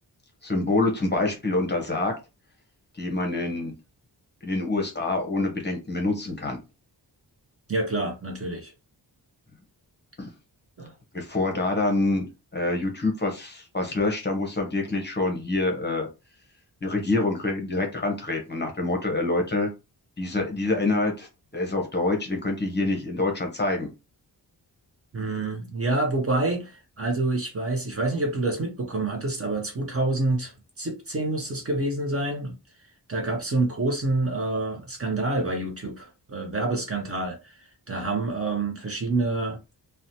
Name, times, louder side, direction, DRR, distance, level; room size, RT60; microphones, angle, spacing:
voice 1, 0.4-2.1 2.9-3.7 4.4-6.6 10.2-10.3 11.1-12.3 12.5-16.1 16.8-19.7 20.2-21.3 21.5-23.9, left 2 dB, 25° left, 0.7 m, -26 dB
voice 2, 7.7-8.7 10.8-10.9 25.1-32.6 33.1-39.6, right 2 dB, 35° right, 0.6 m, -27 dB
2.9 x 2.1 x 2.6 m
wide cardioid pair, 155°, 41 cm